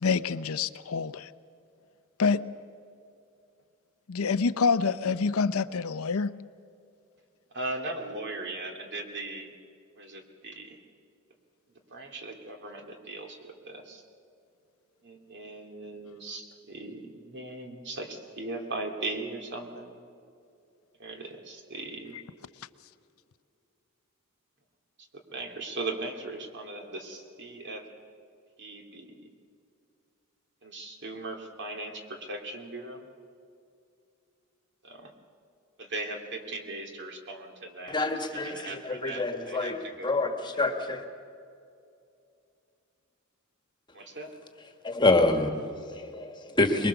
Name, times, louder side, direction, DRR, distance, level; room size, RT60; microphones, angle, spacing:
voice 1, 0.0-1.3 2.2-2.4 4.1-6.3, left 5 dB, 75° left, 14 dB, 0.6 m, -26 dB
voice 2, 7.5-9.5 10.0-10.8 11.9-14.0 15.0-20.0 21.0-22.2 25.3-27.8 28.6-29.3 30.6-33.1 34.8-35.1 35.8-40.1 43.9-44.3, right 2 dB, 55° right, 3 dB, 2.6 m, -38 dB
voice 3, 37.9-41.0 44.8-46.9, left 2 dB, 20° left, 5 dB, 1.6 m, -27 dB
23.5 x 22.0 x 6.9 m, 2.5 s
head